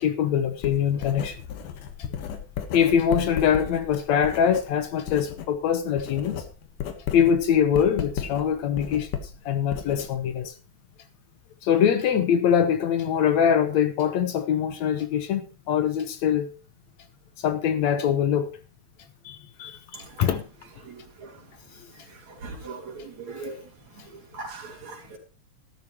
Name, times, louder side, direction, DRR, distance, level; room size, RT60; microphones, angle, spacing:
voice 1, 0.0-1.4 2.7-6.4 7.1-9.1 9.5-10.5 11.6-16.5 17.4-18.5 19.3-20.4, left 8 dB, 70° left, 2.1 m, -23 dB
Writing, 0.6-5.5 5.8-10.5, left 8 dB, 85° left, 3.0 m, -34 dB
voice 2, 22.4-23.6 24.4-25.2, right 3 dB, 65° right, 4.8 m, -38 dB
13.0 x 13.0 x 3.0 m
omnidirectional pair, 3.6 m